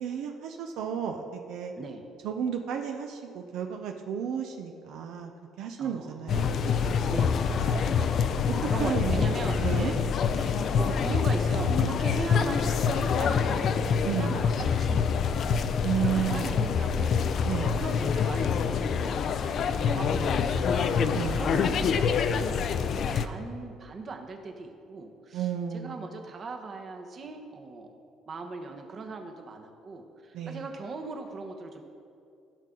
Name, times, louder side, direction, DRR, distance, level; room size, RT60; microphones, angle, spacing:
voice 1, 0.0-1.7 2.2-5.3 5.6-6.5 6.7-6.9 8.5-9.9 14.0-14.4 15.8-16.7 17.4-17.8 21.1-21.4 25.3-26.1 30.3-30.7, right 8 dB, 70° right, 4 dB, 0.6 m, -32 dB
voice 2, 5.8-6.5 7.1-8.3 8.7-10.0 10.3-15.6 15.9-22.6 22.9-27.9 28.3-31.8, right 3 dB, 35° right, 4 dB, 1.0 m, -39 dB
sound 1, 6.3-23.2, left 6 dB, 50° left, 0.4 m, -26 dB
15.5 x 5.7 x 3.8 m, 2.5 s
cardioid pair, 130°, 0 cm